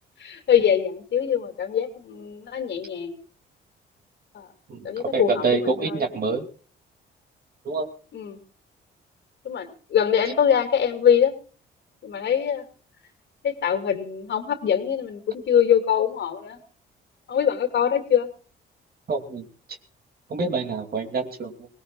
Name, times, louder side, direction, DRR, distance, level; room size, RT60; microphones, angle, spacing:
voice 1, 0.2-3.2 4.3-4.5 4.8-6.0 8.1-8.4 9.4-11.3 12.0-12.7 13.4-16.6 17.3-18.3, left 8 dB, 65° left, 5 dB, 2.4 m, -23 dB
voice 2, 4.7-6.5 7.6-7.9 19.1-19.5 20.3-21.7, right 4 dB, 50° right, 5 dB, 2.7 m, -26 dB
24.5 x 18.5 x 2.4 m, 0.38 s
cardioid pair, 90°, 20 cm